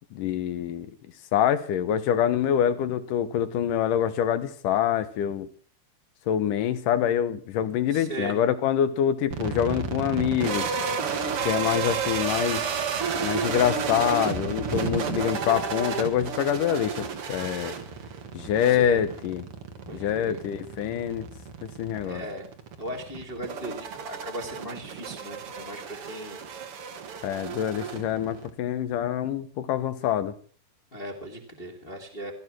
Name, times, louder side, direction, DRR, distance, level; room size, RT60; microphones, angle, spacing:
voice 1, 0.1-0.9 1.3-5.5 6.3-10.7 11.4-12.6 13.1-17.8 18.3-19.4 19.9-21.3 21.6-22.2 27.2-30.3, left 10 dB, 70° left, 13 dB, 2.4 m, -25 dB
voice 2, 7.9-8.4 18.7-19.0 19.9-20.4 22.0-22.5 22.8-26.4 30.9-32.3, right 1 dB, 20° left, 2 dB, 1.9 m, -37 dB
sound 1, 9.3-28.5, right 6 dB, 50° right, 1.9 m, -32 dB
16.5 x 13.5 x 6.0 m, 0.43 s
omnidirectional pair, 4.4 m